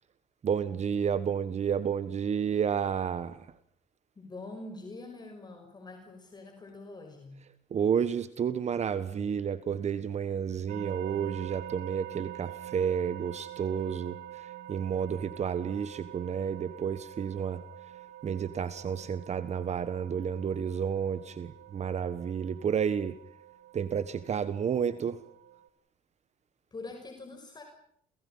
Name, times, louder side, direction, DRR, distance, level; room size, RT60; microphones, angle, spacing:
voice 1, 0.4-3.5 7.7-17.6 18.2-23.2 23.7-25.2, right 7 dB, 40° right, 14 dB, 1.4 m, -31 dB
voice 2, 4.2-7.5 26.7-27.6, left 2 dB, 25° left, 4 dB, 5.7 m, -44 dB
sound 1, 10.7-25.7, right 13 dB, 75° right, 2.5 m, -46 dB
30.0 x 29.0 x 5.7 m, 0.68 s
cardioid pair, 110°, 17 cm